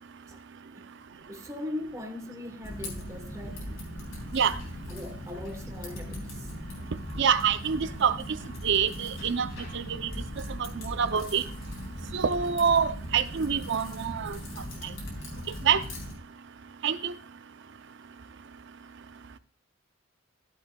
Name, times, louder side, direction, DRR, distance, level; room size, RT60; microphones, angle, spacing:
voice 1, 1.3-3.8 4.9-6.5, left 1 dB, 15° right, 1.0 m, -40 dB
Typing, 2.6-16.1, left 1 dB, 80° left, 3.5 m, -39 dB
voice 2, 7.2-8.2 8.6-9.5 9.7-10.1 10.5-11.4 12.1-14.4 15.6-15.8 16.8-17.1, right 7 dB, 60° right, 0.5 m, -26 dB
13.5 x 7.6 x 2.3 m
head